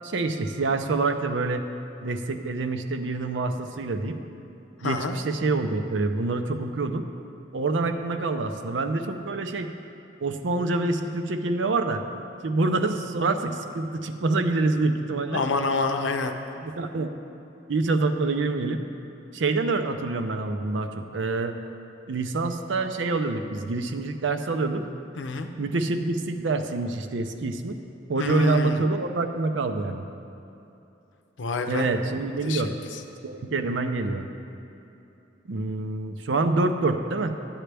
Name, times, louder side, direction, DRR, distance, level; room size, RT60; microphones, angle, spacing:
voice 1, 0.0-1.6 2.0-4.2 4.8-7.1 7.5-9.7 10.2-12.0 12.4-15.4 16.6-17.1 17.7-18.8 19.3-21.5 22.1-24.8 25.6-27.8 28.1-30.0 31.7-32.7 33.2-34.3 35.5-37.4, right 3 dB, 80° right, 7 dB, 0.6 m, -26 dB
voice 2, 4.8-5.2 15.3-16.4 25.2-25.5 28.2-28.8 31.4-31.9 32.4-33.0, left 3 dB, 85° left, 5 dB, 0.7 m, -27 dB
12.0 x 8.8 x 3.4 m, 2.9 s
head